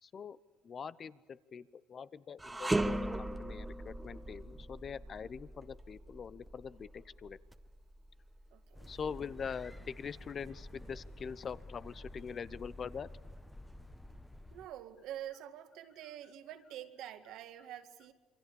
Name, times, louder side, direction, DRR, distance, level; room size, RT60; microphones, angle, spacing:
voice 1, 0.0-0.4 0.6-7.4 8.9-13.1, left 6 dB, 40° left, 16 dB, 1.0 m, -43 dB
sound 1, 2.4-11.6 12.1-12.2 13.1-14.0, right 1 dB, 15° right, 1.2 m, -40 dB
voice 2, 8.5-8.9 14.5-18.1, right 11 dB, 70° right, 7 dB, 2.0 m, -47 dB
sound 2, 8.7-14.7, left 1 dB, 5° left, 1.5 m, -51 dB
27.5 x 24.0 x 7.2 m, 1.3 s
supercardioid pair, 85°, 0 cm